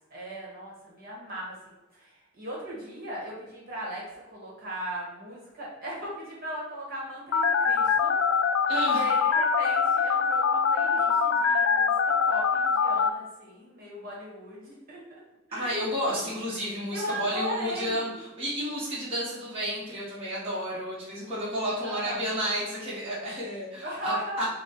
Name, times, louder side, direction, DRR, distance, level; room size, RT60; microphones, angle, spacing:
voice 1, 0.1-8.2 8.9-15.2 15.5-16.1 16.9-18.2 21.8-22.2 23.8-24.4, right 1 dB, 50° right, -4 dB, 1.4 m, -38 dB
Telephone, 7.3-13.1, left 5 dB, 75° left, 0.3 m, -24 dB
voice 2, 8.7-9.1 15.5-18.1 18.4-24.4, equal, 30° right, -9 dB, 1.3 m, -31 dB
4.2 x 2.3 x 4.2 m, 1.0 s
head